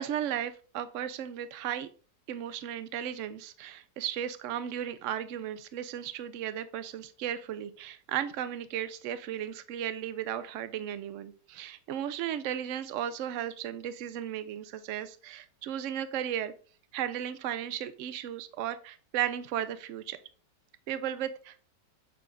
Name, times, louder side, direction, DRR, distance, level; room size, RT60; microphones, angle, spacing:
voice 1, 0.0-1.9 2.3-16.5 16.9-20.2 20.9-21.6, right 10 dB, 85° right, 13 dB, 0.6 m, -35 dB
7.7 x 3.5 x 3.8 m, 0.39 s
omnidirectional pair, 1.9 m